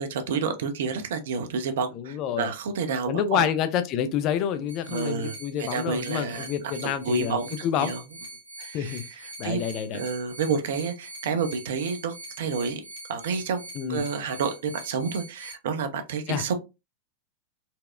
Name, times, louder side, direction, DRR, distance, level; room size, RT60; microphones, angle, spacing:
voice 1, 0.0-3.5 4.9-6.5 6.8-8.0 8.6-9.6 9.9-12.8 13.1-13.6 13.9-16.5, right 5 dB, 60° right, 0.5 m, -29 dB
voice 2, 1.9-2.5 3.1-8.0 8.7-10.0 13.7-14.0 16.3-16.5, left 9 dB, 40° left, 0.4 m, -28 dB
sound 1, 4.7-15.5, right 2 dB, 85° right, 1.2 m, -43 dB
4.1 x 2.0 x 2.4 m
figure-of-eight pair, 90°, 0 cm